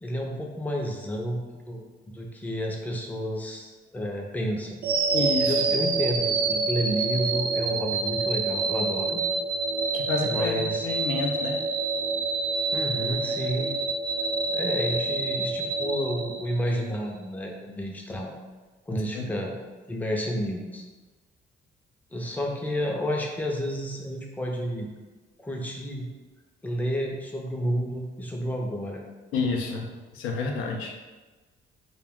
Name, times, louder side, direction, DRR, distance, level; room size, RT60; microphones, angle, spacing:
voice 1, 0.0-1.8 2.1-4.8 5.5-9.2 10.2-10.9 12.7-13.7 14.5-18.3 18.9-19.6 19.9-20.8 22.1-24.9 25.4-26.1 26.6-29.0, equal, 10° left, 0 dB, 0.4 m, -30 dB
sound 1, 4.8-17.0, right 4 dB, 50° right, 0.4 m, -27 dB
voice 2, 5.1-5.6 9.9-11.6 19.1-19.3 29.3-29.9 30.1-30.9, left 4 dB, 90° left, 2 dB, 0.4 m, -29 dB
2.3 x 2.1 x 3.5 m, 1.3 s
cardioid pair, 90°, 20 cm